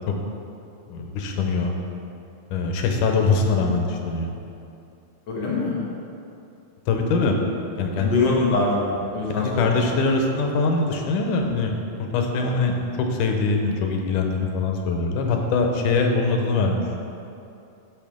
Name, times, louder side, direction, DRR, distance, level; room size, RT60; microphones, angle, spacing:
voice 1, 0.9-1.7 2.5-4.3 6.9-7.3 7.8-8.1 9.4-12.7 13.0-16.8, left 4 dB, 90° left, 2 dB, 2.5 m, -23 dB
voice 2, 5.3-5.8 8.0-9.8, left 3 dB, 55° left, -4 dB, 2.2 m, -23 dB
11.5 x 8.3 x 3.6 m, 2.7 s
omnidirectional pair, 3.5 m